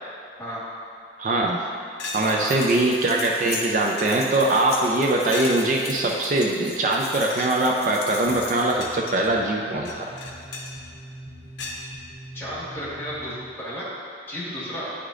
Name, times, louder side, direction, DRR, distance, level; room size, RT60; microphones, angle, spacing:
voice 1, 1.2-1.6 2.1-10.1, right 2 dB, 45° right, -1 dB, 0.4 m, -22 dB
sound 1, 1.5-1.6 2.0-2.9 3.4-3.5 3.8-4.3 5.3-5.8 6.8-7.0 7.3-7.6 8.3-9.3 9.8-10.7 11.6-11.8, left 3 dB, 85° left, 0.7 m, -36 dB
sound 2, 2.0-8.9, left 3 dB, 55° left, 0.9 m, -38 dB
sound 3, 8.1-13.4, right 1 dB, 70° right, 1.4 m, -43 dB
voice 2, 12.3-13.9 14.3-14.9, equal, 10° left, -9 dB, 1.4 m, -33 dB
9.1 x 4.9 x 2.5 m, 2.4 s
head